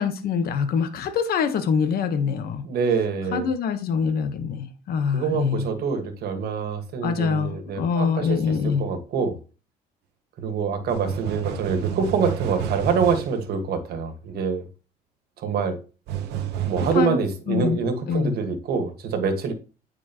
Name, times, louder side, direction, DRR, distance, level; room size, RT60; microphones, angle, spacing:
voice 1, 0.0-2.7 3.3-5.7 7.0-8.8 16.9-17.2 17.5-17.8 18.1-18.4, left 6 dB, 65° left, 1.2 m, -24 dB
voice 2, 2.6-3.5 5.1-9.4 10.4-14.6 15.4-15.8 16.6-19.5, right 5 dB, 65° right, 1.7 m, -26 dB
sound 1, 10.9-13.4 16.1-17.0, right 9 dB, 85° right, 1.0 m, -29 dB
9.1 x 4.5 x 3.0 m
cardioid pair, 110°, 17 cm